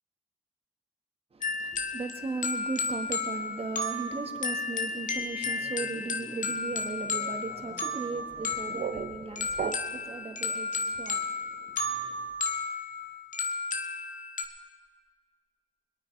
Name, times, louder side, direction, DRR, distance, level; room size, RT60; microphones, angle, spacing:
voice 1, 1.3-12.3, right 3 dB, 45° right, 1.6 m, -37 dB
sound 1, 1.4-14.4, left 3 dB, 65° left, 1.4 m, -33 dB
sound 2, 8.3-10.2, right 8 dB, 75° right, 0.7 m, -37 dB
21.5 x 8.9 x 4.7 m
cardioid pair, 60°, 15 cm